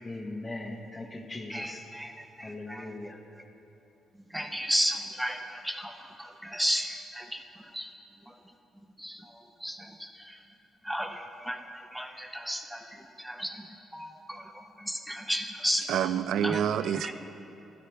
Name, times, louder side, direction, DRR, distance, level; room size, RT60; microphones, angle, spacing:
voice 1, 0.0-1.8 2.4-3.2, left 2 dB, 25° left, 4 dB, 1.0 m, -39 dB
voice 2, 1.5-2.1 2.4-2.9 4.3-5.9 6.2-7.4 7.7-7.9 9.0-9.2 9.6-9.8 10.9-11.6 11.9-12.8 13.2-13.6 13.9-14.4 14.8-15.8 16.4-16.6 17.0-17.1, equal, 5° right, 5 dB, 0.6 m, -32 dB
voice 3, 15.9-17.1, right 9 dB, 75° right, 13 dB, 0.3 m, -27 dB
12.5 x 9.7 x 3.4 m, 3.0 s
cardioid pair, 90°, 0 cm